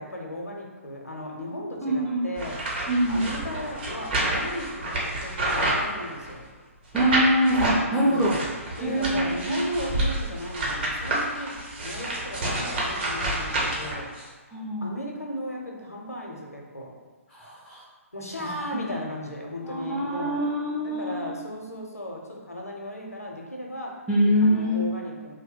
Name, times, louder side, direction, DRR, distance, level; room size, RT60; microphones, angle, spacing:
voice 1, 0.0-2.6 3.1-6.5 7.9-11.5 11.8-14.1 14.8-16.9 18.1-20.4 20.7-24.0 24.4-25.3, equal, 85° left, 0 dB, 0.7 m, -36 dB
voice 2, 1.8-2.3 2.9-3.2 6.9-8.4 8.8-9.6 14.5-14.9 17.3-17.8 18.4-18.9 19.6-21.4 24.1-25.2, equal, ahead, -7 dB, 0.4 m, -25 dB
sound 1, 2.4-6.4 6.9-7.8 8.2-14.2, right 1 dB, 40° right, 0.8 m, -29 dB
2.7 x 2.1 x 3.6 m, 1.3 s
figure-of-eight pair, 130°, 8 cm